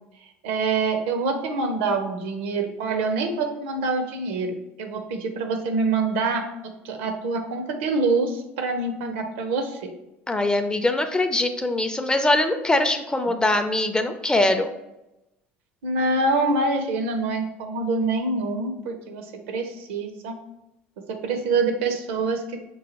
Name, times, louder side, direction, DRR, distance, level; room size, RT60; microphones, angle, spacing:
voice 1, 0.4-9.9 15.8-20.4 21.1-22.6, right 3 dB, 70° right, 6 dB, 0.6 m, -26 dB
voice 2, 10.3-14.7, left 2 dB, 15° left, 7 dB, 0.4 m, -22 dB
5.4 x 2.4 x 2.9 m, 0.93 s
hypercardioid pair, 70°, 7 cm